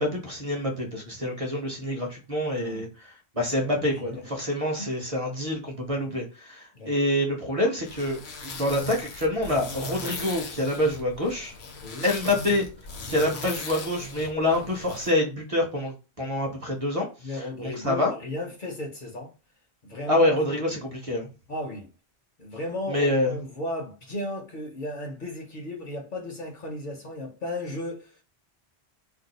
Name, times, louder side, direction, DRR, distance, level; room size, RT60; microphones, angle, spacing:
voice 1, 0.0-11.5 12.0-12.7 13.1-18.1 20.1-21.3 22.9-23.4, left 1 dB, 35° right, 0.7 m, -26 dB
voice 2, 2.5-2.9 3.6-4.5 4.8-4.9 6.0-6.2 6.7-6.9 11.8-12.1 17.2-19.3 19.8-20.8 21.5-21.9 22.4-28.2, left 1 dB, 55° left, 0.8 m, -35 dB
sound 1, 7.8-15.1, left 3 dB, 75° left, 1.0 m, -38 dB
2.6 x 2.3 x 3.9 m
omnidirectional pair, 1.1 m